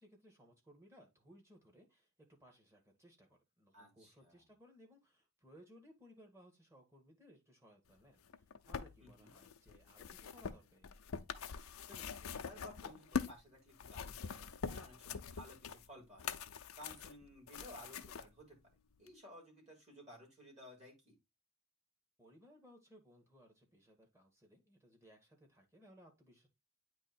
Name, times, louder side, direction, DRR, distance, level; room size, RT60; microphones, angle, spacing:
voice 1, 0.0-8.2 8.7-10.9 22.2-26.5, equal, 15° right, 2 dB, 1.8 m, -63 dB
voice 2, 3.7-4.5 9.0-9.3 11.9-16.4 16.7-18.6 19.0-21.2, equal, 30° right, -2 dB, 3.9 m, -56 dB
sound 1, 8.3-13.4 13.7-18.3 19.1-19.2, left 6 dB, 75° left, 0.6 m, -44 dB
8.8 x 3.1 x 4.4 m, 0.22 s
head